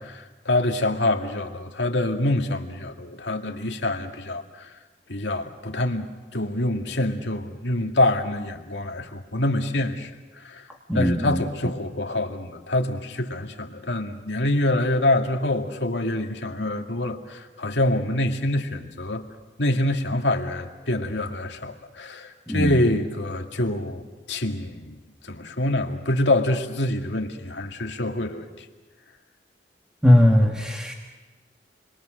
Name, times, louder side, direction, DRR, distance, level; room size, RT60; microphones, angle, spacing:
voice 1, 0.0-4.7 5.1-10.1 10.4-10.7 10.9-19.3 19.6-25.0 25.2-28.7, left 1 dB, 85° left, 3 dB, 2.2 m, -26 dB
voice 2, 10.9-11.4 22.5-22.8 30.0-30.9, left 1 dB, 5° right, 1 dB, 1.7 m, -19 dB
29.0 x 22.5 x 6.4 m, 1.2 s
head